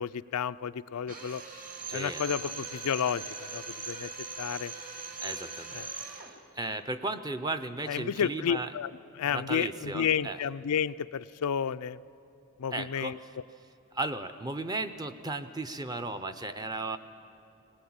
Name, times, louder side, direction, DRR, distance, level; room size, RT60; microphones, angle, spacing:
voice 1, 0.0-1.4 1.9-4.1 4.4-4.7 5.7-5.9 7.9-8.9 9.2-12.0 12.6-13.2, left 7 dB, 85° left, 13 dB, 0.4 m, -31 dB
Drill, 1.1-6.4, right 4 dB, 40° right, 1.7 m, -40 dB
voice 2, 1.9-2.5 5.2-5.8 6.5-8.7 9.3-10.4 12.7-13.3 13.9-17.0, right 2 dB, 15° right, 9 dB, 0.6 m, -35 dB
20.0 x 19.0 x 8.7 m, 2.8 s
head